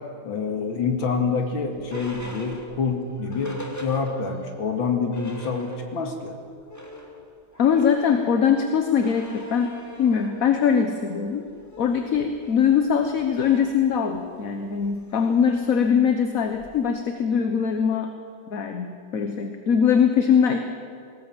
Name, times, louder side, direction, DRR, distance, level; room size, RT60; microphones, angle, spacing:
voice 1, 0.2-6.3, left 5 dB, 70° left, 3 dB, 2.8 m, -27 dB
sound 1, 0.9-4.5 4.8-4.9 5.1-6.2 6.5-17.0, left 1 dB, 10° left, 2.2 m, -42 dB
voice 2, 7.6-11.5 11.8-18.1 18.5-20.6, left 7 dB, 50° left, 6 dB, 1.3 m, -22 dB
21.0 x 18.5 x 7.5 m, 2.3 s
omnidirectional pair, 2.3 m